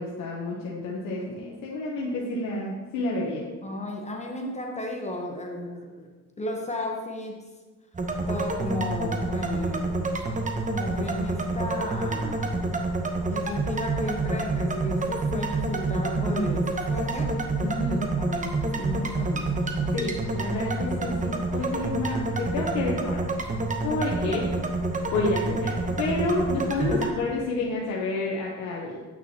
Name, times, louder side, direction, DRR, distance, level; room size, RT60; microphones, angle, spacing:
voice 1, 0.0-3.4 16.1-16.4 17.6-18.1 19.9-23.2 23.8-24.5 25.1-29.0, left 2 dB, 85° left, -3 dB, 1.0 m, -29 dB
voice 2, 3.6-6.1 6.4-7.4 8.3-10.0 10.7-12.8 13.3-17.4 18.2-19.5 26.6-27.0, left 1 dB, 25° left, 1 dB, 1.0 m, -34 dB
sound 1, 7.9-27.1, right 2 dB, 25° right, 0.9 m, -28 dB
8.9 x 5.8 x 2.9 m, 1.3 s
cardioid pair, 90°, 30 cm